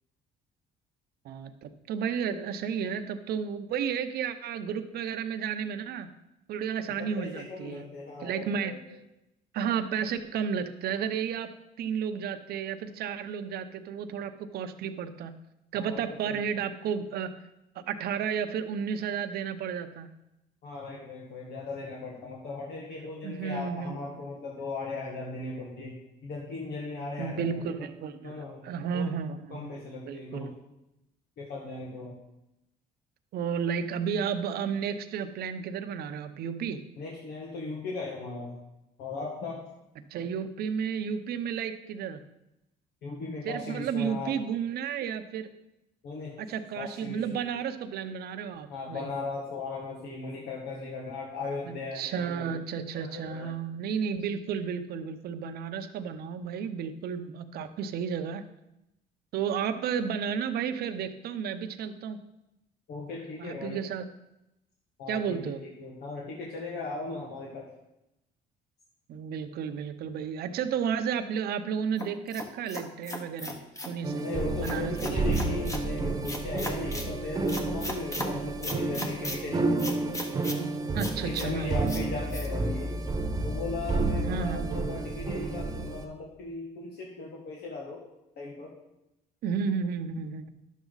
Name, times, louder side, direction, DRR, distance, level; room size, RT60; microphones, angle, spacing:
voice 1, 1.2-6.1 6.5-7.8 8.2-8.7 9.5-11.5 11.8-15.4 15.7-17.3 17.9-20.1 23.2-24.0 27.2-29.7 30.1-30.5 33.3-36.8 40.1-42.2 43.4-45.5 46.4-49.1 51.7-58.4 59.3-62.2 63.4-64.0 65.1-65.6 69.1-73.6 73.8-74.3 74.6-75.2 80.9-81.9 84.2-84.8 89.4-90.5, right 7 dB, 65° right, 8 dB, 0.8 m, -32 dB
voice 2, 7.0-9.0 15.7-16.6 20.6-26.0 26.2-27.9 28.2-28.7 28.9-29.1 29.5-30.6 31.4-32.2 37.0-38.6 39.0-39.7 43.0-44.4 46.0-46.4 46.8-47.4 48.7-52.5 53.0-53.5 54.5-54.6 62.9-63.8 65.0-67.7 74.2-79.6 81.2-82.9 83.4-88.1 88.4-88.7, left 3 dB, 75° left, -2 dB, 1.8 m, -38 dB
sound 1, 72.0-74.0 74.6-75.8 76.2-77.1 77.5-78.3 78.6-79.4 79.8-80.6 81.0-81.5 81.9-82.0 82.3-82.5, left 1 dB, 20° left, 1.4 m, -37 dB
sound 2, 74.0-86.0, right 3 dB, 25° right, 1.2 m, -30 dB
11.0 x 7.3 x 4.0 m, 0.89 s
cardioid pair, 110°, 17 cm